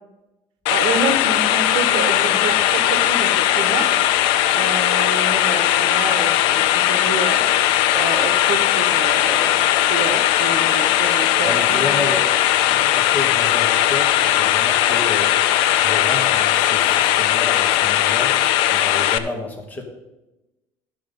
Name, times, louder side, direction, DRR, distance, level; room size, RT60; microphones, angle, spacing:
sound 1, 0.7-19.2, left 13 dB, 90° left, 0.6 m, -18 dB
voice 1, 0.7-3.9 4.5-11.8, right 5 dB, 60° right, 8 dB, 1.3 m, -28 dB
voice 2, 11.4-12.4 12.7-15.3 15.8-18.3 18.7-19.8, left 2 dB, 20° left, 2 dB, 1.6 m, -30 dB
12.5 x 5.9 x 5.4 m, 1.0 s
cardioid pair, 150°, 9 cm